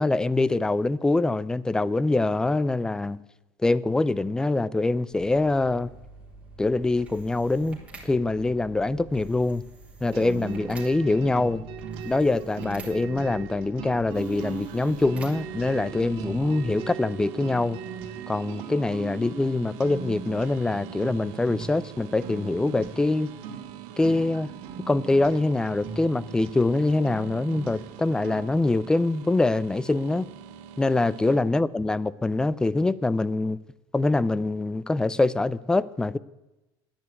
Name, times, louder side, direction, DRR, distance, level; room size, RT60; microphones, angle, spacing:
voice 1, 0.0-3.2 3.6-5.9 6.6-9.6 10.0-11.6 12.0-17.8 18.3-23.3 24.0-24.5 24.9-30.3 30.8-33.6 33.9-36.2, left 2 dB, 5° left, 0.4 m, -24 dB
sound 1, 5.0-16.9, right 3 dB, 10° right, 3.7 m, -47 dB
sound 2, 10.1-28.7, right 6 dB, 60° right, 2.1 m, -40 dB
sound 3, 14.1-31.4, right 10 dB, 80° right, 1.1 m, -45 dB
11.0 x 10.5 x 8.6 m
cardioid pair, 145°, 11 cm